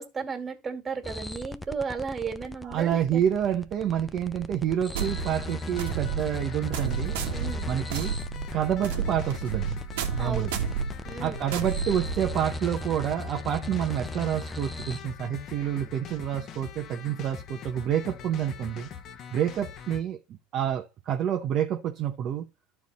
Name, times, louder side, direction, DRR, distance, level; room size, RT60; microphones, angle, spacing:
voice 1, 0.0-3.2 7.3-7.7 10.2-10.5 11.1-11.5, right 5 dB, 25° right, 2.2 m, -34 dB
sound 1, 1.0-15.0, left 1 dB, 10° left, 0.5 m, -39 dB
voice 2, 2.6-7.2 7.7-8.2 8.5-9.8 10.2-10.6 11.2-18.9 19.3-20.2 20.5-22.4, right 10 dB, 45° right, 0.9 m, -28 dB
sound 2, 4.9-12.6, right 6 dB, 85° right, 1.4 m, -32 dB
sound 3, 5.0-20.0, left 8 dB, 45° left, 1.2 m, -42 dB
12.0 x 4.6 x 4.2 m
supercardioid pair, 110°, 0 cm